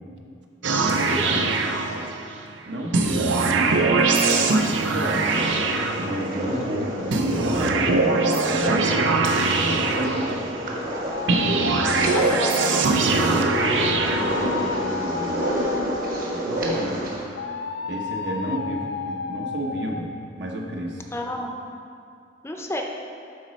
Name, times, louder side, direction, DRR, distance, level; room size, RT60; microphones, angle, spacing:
sound 1, 0.6-2.4 2.9-6.5 7.1-10.7 11.3-14.8, right 3 dB, 80° right, 0.6 m, -22 dB
voice 1, 0.9-1.6 2.7-5.3 5.9-10.8 14.0-15.6 16.3-17.1 17.8-20.1 20.4-21.1, right 1 dB, 65° right, 0 dB, 0.9 m, -32 dB
sound 2, 5.3-17.2, equal, 50° right, 1.3 m, -29 dB
sound 3, 11.1-12.9 13.5-16.4 17.4-20.0, left 5 dB, 65° left, 0.3 m, -32 dB
voice 2, 12.1-12.8 21.1-21.6 22.4-22.8, left 1 dB, 15° left, 2 dB, 0.5 m, -30 dB
11.0 x 4.1 x 4.1 m, 2.4 s
head